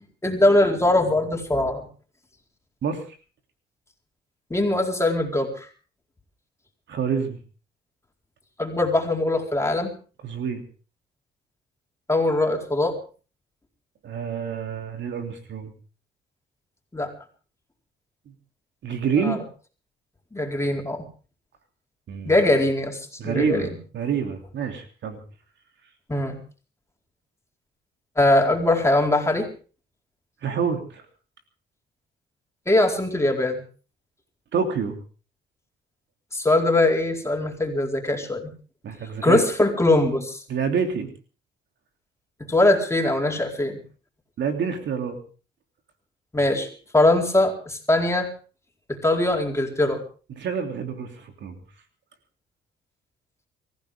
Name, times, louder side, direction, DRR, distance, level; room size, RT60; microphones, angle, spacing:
voice 1, 0.2-1.9 4.5-5.7 8.6-9.9 12.1-13.0 16.9-17.1 19.2-19.4 20.3-21.1 22.2-23.7 26.1-26.4 28.2-29.5 32.7-33.6 36.3-38.5 39.2-40.4 42.4-43.8 46.3-48.3 48.9-50.0, left 2 dB, 15° left, 2 dB, 4.4 m, -21 dB
voice 2, 6.9-7.4 10.2-10.6 14.0-15.7 18.3-18.4 18.8-19.4 22.1-22.4 23.2-25.2 30.4-31.0 34.5-35.0 38.8-39.4 40.5-41.1 44.4-45.2 50.3-51.5, right 6 dB, 65° right, 5 dB, 3.2 m, -27 dB
24.0 x 15.5 x 3.7 m, 0.37 s
cardioid pair, 90°, 20 cm